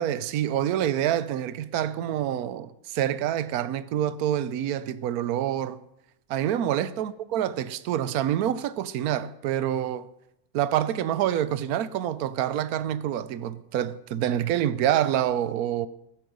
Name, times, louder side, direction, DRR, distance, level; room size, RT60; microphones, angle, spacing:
voice 1, 0.0-5.8 6.3-10.1 10.5-15.9, right 11 dB, 75° right, 1.2 m, -27 dB
15.0 x 12.0 x 5.3 m
omnidirectional pair, 1.6 m